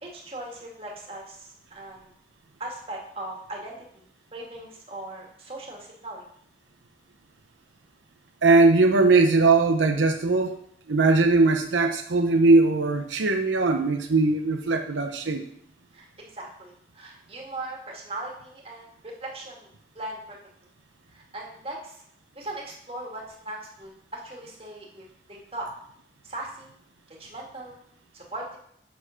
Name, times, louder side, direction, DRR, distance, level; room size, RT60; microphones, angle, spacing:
voice 1, 0.0-2.1 2.6-4.0 4.3-6.3 15.9-19.7 20.0-20.4 21.1-22.0 22.3-25.7 26.2-26.7 27.1-27.8 28.1-28.6, right 1 dB, 30° right, -1 dB, 2.0 m, -39 dB
voice 2, 8.4-10.6 10.9-15.4, right 3 dB, 85° right, 5 dB, 0.8 m, -20 dB
7.4 x 6.7 x 5.7 m, 0.67 s
head